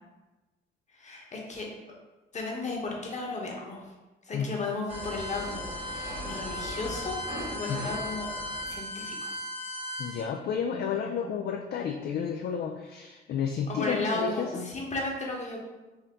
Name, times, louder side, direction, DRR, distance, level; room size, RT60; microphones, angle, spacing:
voice 1, 0.9-1.7 2.3-3.9 4.2-7.2 7.5-8.3 8.7-9.3 13.7-15.6, left 3 dB, 35° left, -1 dB, 1.1 m, -34 dB
sound 1, 4.9-10.2, left 1 dB, 70° right, 1.2 m, -36 dB
voice 2, 10.0-14.8, left 7 dB, 55° left, 3 dB, 0.4 m, -31 dB
4.2 x 2.7 x 3.7 m, 1.1 s
cardioid pair, 90°, 20 cm